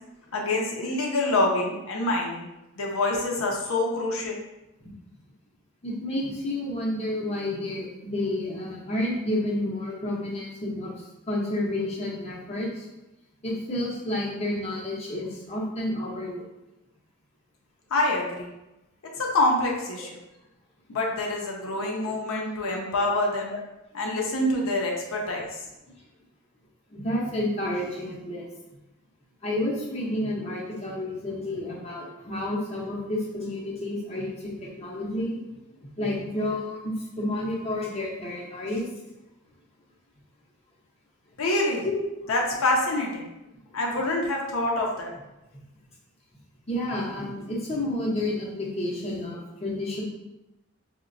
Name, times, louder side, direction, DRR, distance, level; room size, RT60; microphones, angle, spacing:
voice 1, 0.3-2.5 2.8-4.4 17.9-18.5 19.2-20.1 20.9-23.5 23.9-25.5 41.4-41.8 42.3-43.2 43.7-45.1, left 2 dB, 75° left, -1 dB, 0.5 m, -26 dB
voice 2, 5.8-12.8 13.4-16.4 26.9-28.5 29.4-35.4 36.0-38.8 41.8-42.0 46.7-50.0, left 1 dB, 30° left, -4 dB, 0.6 m, -30 dB
3.8 x 2.1 x 2.5 m, 0.96 s
head